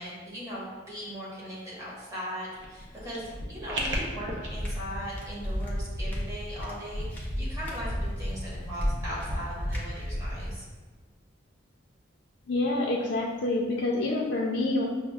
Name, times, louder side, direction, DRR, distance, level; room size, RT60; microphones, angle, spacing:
voice 1, 0.0-10.7, equal, 15° right, -8 dB, 1.2 m, -39 dB
sound 1, 2.5-4.5, right 1 dB, 65° right, 0.6 m, -35 dB
sound 2, 4.4-10.6, equal, 10° left, 0.6 m, -33 dB
voice 2, 12.5-14.8, left 2 dB, 65° left, -3 dB, 0.4 m, -27 dB
6.1 x 2.0 x 2.3 m, 1.3 s
head